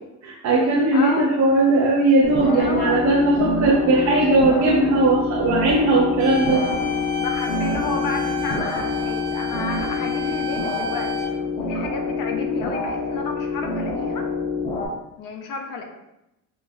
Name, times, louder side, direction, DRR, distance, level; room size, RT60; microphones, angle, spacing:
voice 1, 0.2-6.6, right 2 dB, 45° right, -3 dB, 0.5 m, -18 dB
voice 2, 0.9-1.4 2.4-3.0 7.2-14.3 15.2-15.8, left 4 dB, 60° left, 3 dB, 0.6 m, -31 dB
sound 1, 2.2-14.9, left 3 dB, 20° left, 0.7 m, -26 dB
sound 2, 6.2-11.2, left 3 dB, 85° right, 0.9 m, -31 dB
3.7 x 2.2 x 2.6 m, 0.90 s
cardioid pair, 115°, 39 cm